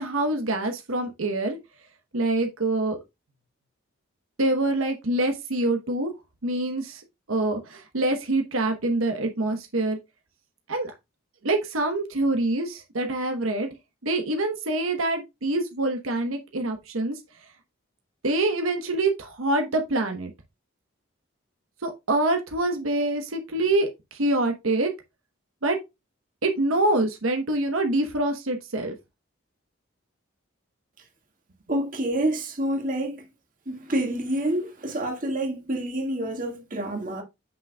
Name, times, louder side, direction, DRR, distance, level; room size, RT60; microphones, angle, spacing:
voice 1, 0.0-1.6 2.1-3.0 4.4-6.1 6.4-7.0 7.3-10.0 10.7-10.9 11.4-13.7 14.0-17.2 18.2-20.3 21.8-24.9 25.6-25.8 26.4-28.9, right 2 dB, 85° right, 1.0 m, -25 dB
voice 2, 31.7-33.3 33.7-37.2, right 1 dB, 40° right, 1.8 m, -28 dB
7.5 x 6.0 x 2.2 m
head